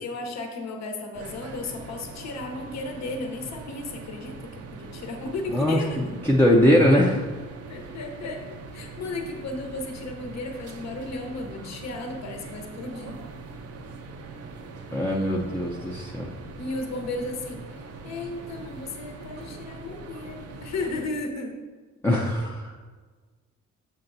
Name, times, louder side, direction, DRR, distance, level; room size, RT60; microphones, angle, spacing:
voice 1, 0.0-6.0 7.7-8.4 8.7-13.2 16.6-17.6 18.0-21.6 22.3-22.4, left 2 dB, 60° left, 3 dB, 1.0 m, -34 dB
sound 1, 1.1-21.1, right 3 dB, 55° right, 0.6 m, -42 dB
voice 2, 5.5-7.2 14.9-16.3 22.0-22.7, left 1 dB, 5° left, -4 dB, 0.6 m, -21 dB
6.9 x 5.6 x 2.7 m, 1.4 s
cardioid pair, 90°, 30 cm